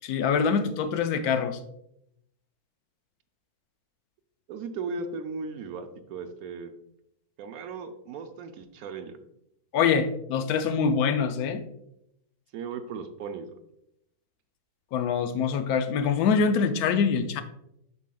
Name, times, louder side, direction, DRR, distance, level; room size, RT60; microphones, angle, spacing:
voice 1, 0.0-1.6 9.7-11.6 14.9-17.4, left 6 dB, 80° left, 9 dB, 1.1 m, -24 dB
voice 2, 4.5-6.7 7.4-9.2 12.5-13.5, right 4 dB, 75° right, 7 dB, 1.1 m, -37 dB
8.3 x 6.3 x 2.2 m, 0.79 s
omnidirectional pair, 1.6 m